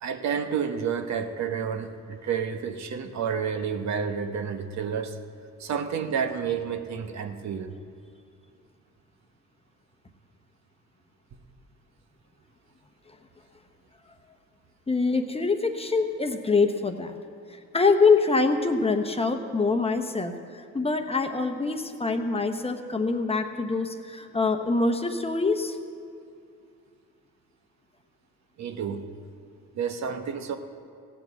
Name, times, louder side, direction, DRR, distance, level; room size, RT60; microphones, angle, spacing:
voice 1, 0.0-5.2 5.6-7.7 28.6-29.1 29.7-30.6, right 7 dB, 65° right, 6 dB, 1.0 m, -30 dB
voice 2, 14.9-17.2 17.5-25.8, left 4 dB, 20° left, 6 dB, 0.9 m, -25 dB
16.5 x 6.0 x 7.9 m, 2.4 s
cardioid pair, 90°, 30 cm